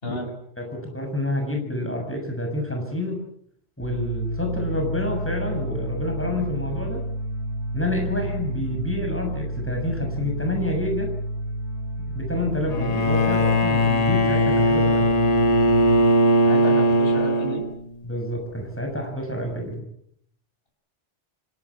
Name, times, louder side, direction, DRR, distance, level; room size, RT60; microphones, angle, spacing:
voice 1, 0.6-3.2 3.8-7.0 7.7-11.1 12.0-15.1 18.0-19.8, left 1 dB, 10° left, 3 dB, 7.0 m, -28 dB
sound 1, 3.8-16.0, right 1 dB, 85° left, 7.4 m, -30 dB
Bowed string instrument, 12.7-18.0, equal, 35° left, 1.1 m, -19 dB
voice 2, 16.5-17.7, left 1 dB, 55° left, 2 dB, 7.4 m, -32 dB
27.5 x 17.5 x 8.5 m, 0.72 s
omnidirectional pair, 1.2 m